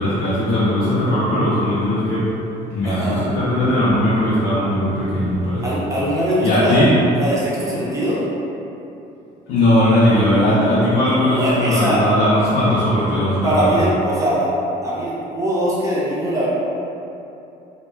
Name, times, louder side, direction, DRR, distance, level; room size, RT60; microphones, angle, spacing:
voice 1, 0.0-2.3 2.7-5.7 6.4-6.9 9.5-13.8, left 1 dB, 90° left, -10 dB, 0.5 m, -18 dB
voice 2, 2.8-3.3 5.6-6.8 7.1-8.2 11.2-12.0 13.4-14.5 14.8-16.5, right 1 dB, 20° right, -8 dB, 0.7 m, -21 dB
2.2 x 2.2 x 3.0 m, 2.8 s
cardioid pair, 110°, 17 cm